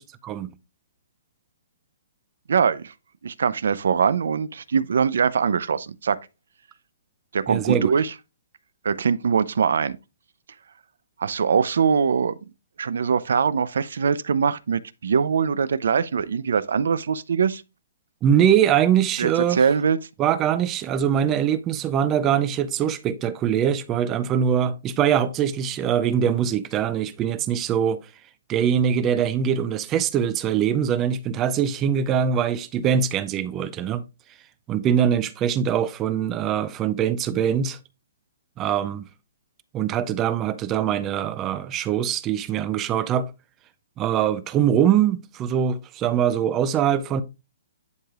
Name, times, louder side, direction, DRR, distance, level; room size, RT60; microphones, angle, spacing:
voice 1, 2.5-2.9 3.2-6.2 7.3-8.1 8.8-10.0 11.2-12.4 12.8-17.6 19.2-20.0, right 6 dB, 70° right, 0.5 m, -22 dB
voice 2, 7.5-7.9 18.2-19.6 20.2-28.0 28.5-34.0 34.7-37.8 38.6-39.0 39.7-43.3 44.0-47.2, right 9 dB, 15° right, 0.4 m, -22 dB
10.5 x 4.9 x 2.4 m
hypercardioid pair, 175°, 0 cm